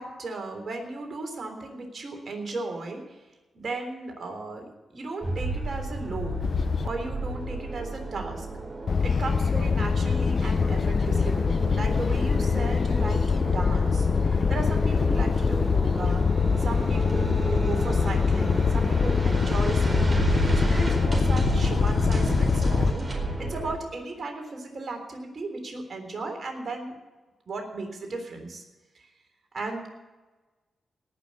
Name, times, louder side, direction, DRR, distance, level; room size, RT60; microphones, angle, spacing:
voice 1, 0.0-3.2 3.5-6.4 6.8-8.5 9.0-16.2 16.6-23.1 23.4-26.9 27.5-28.6 28.9-29.1 29.5-29.9, right 3 dB, 55° right, 4 dB, 3.5 m, -35 dB
sound 1, 5.2-23.8, right 2 dB, 35° right, 4.4 m, -32 dB
sound 2, 6.4-6.9 8.9-22.9, left 5 dB, 60° left, 0.4 m, -24 dB
18.5 x 6.3 x 8.5 m, 1.2 s
supercardioid pair, 40°, 0 cm